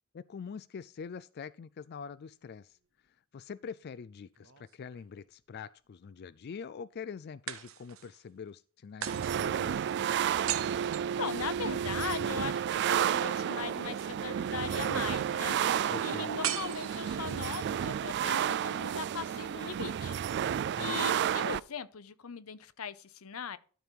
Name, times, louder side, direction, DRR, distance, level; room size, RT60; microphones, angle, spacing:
voice 1, 0.1-2.8 3.0-10.0 15.9-16.3 20.8-21.1, left 6 dB, 50° left, 0.4 m, -44 dB
sound 1, 4.4-5.4 7.5-8.2 9.0-11.9 16.4-17.5, right 10 dB, 75° right, 1.1 m, -39 dB
sound 2, 9.1-21.6, right 9 dB, 55° right, 0.3 m, -31 dB
voice 2, 11.2-23.6, left 6 dB, 85° left, 0.8 m, -40 dB
13.0 x 5.3 x 4.6 m
head